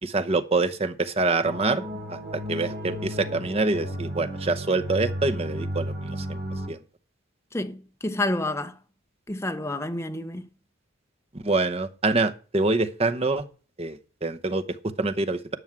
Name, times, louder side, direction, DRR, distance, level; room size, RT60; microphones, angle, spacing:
voice 1, 0.0-1.8 2.1-6.4 6.7-6.8 11.3-13.4 13.8-15.6, right 3 dB, 30° right, 0.8 m, -26 dB
sound 1, 1.4-6.7, equal, 50° right, 3.2 m, -33 dB
voice 2, 7.5-8.7 9.3-10.4, left 1 dB, 15° left, 0.8 m, -29 dB
11.0 x 6.3 x 7.4 m
head